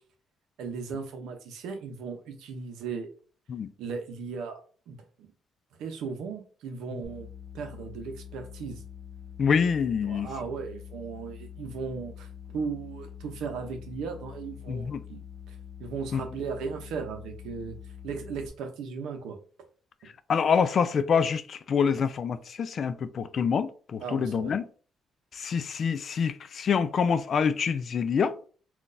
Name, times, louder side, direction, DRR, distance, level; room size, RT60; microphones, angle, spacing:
voice 1, 0.6-3.1 3.8-5.3 5.8-7.3 7.5-8.8 10.1-12.3 12.5-17.8 18.0-19.4 24.0-24.5, right 5 dB, 85° right, 0.6 m, -37 dB
sound 1, 7.0-18.5, left 9 dB, 15° left, 0.7 m, -45 dB
voice 2, 9.4-10.3 14.7-15.0 16.1-16.2 20.3-24.7 25.3-28.3, left 6 dB, 55° left, 0.3 m, -26 dB
3.8 x 2.3 x 2.5 m
cardioid pair, 90°, 0 cm